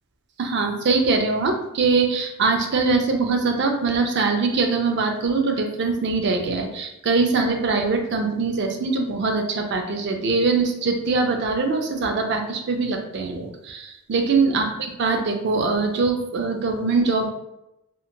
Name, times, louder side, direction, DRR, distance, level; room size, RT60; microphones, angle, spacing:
voice 1, 0.4-14.7 15.0-17.3, right 4 dB, 50° right, 4 dB, 0.4 m, -22 dB
2.8 x 2.1 x 2.5 m, 0.88 s
head